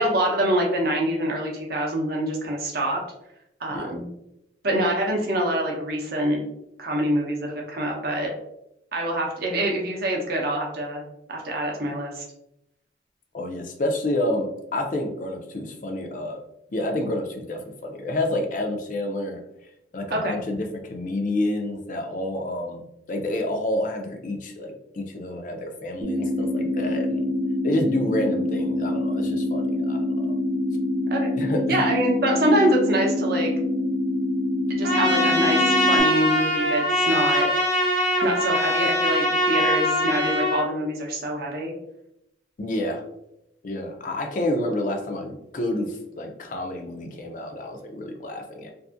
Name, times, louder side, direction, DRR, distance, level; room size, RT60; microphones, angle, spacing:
voice 1, 0.0-3.0 3.6-4.1 4.6-6.4 6.8-8.3 8.9-11.0 11.3-12.2 20.1-20.4 31.1-31.3 31.7-33.5 34.7-37.5 38.2-41.7, right 1 dB, 55° right, 0 dB, 0.7 m, -25 dB
voice 2, 13.3-16.4 16.7-19.4 19.9-27.2 27.6-30.4 31.4-31.8 42.6-43.0 43.6-48.7, left 1 dB, 45° left, 3 dB, 0.4 m, -29 dB
sound 1, 26.0-36.0, left 1 dB, 10° right, 0.5 m, -25 dB
Trumpet, 34.8-40.6, equal, 85° right, 0.7 m, -22 dB
2.6 x 2.5 x 2.4 m, 0.83 s
head